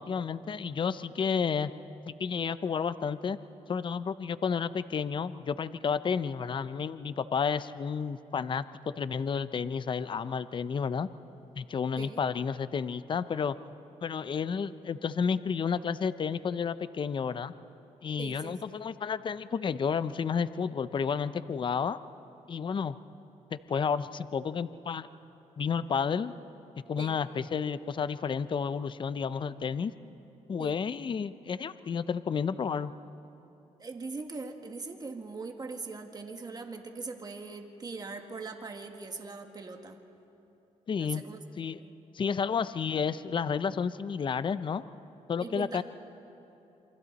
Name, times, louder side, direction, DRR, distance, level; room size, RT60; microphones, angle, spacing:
voice 1, 0.0-1.7 2.1-3.4 3.7-11.1 11.6-13.6 14.0-17.5 18.0-22.0 22.5-23.0 23.5-25.1 25.6-26.3 26.9-29.9 30.5-32.9 40.9-41.2 41.6-41.8 42.1-44.8 45.3-45.8, left 6 dB, 40° left, 14 dB, 0.6 m, -31 dB
voice 2, 18.2-18.8 27.0-27.2 30.6-30.8 33.8-40.0 41.0-41.4 41.8-41.9 45.4-45.8, right 3 dB, 30° right, 3 dB, 2.0 m, -41 dB
28.0 x 24.0 x 4.2 m, 2.9 s
cardioid pair, 80°, 13 cm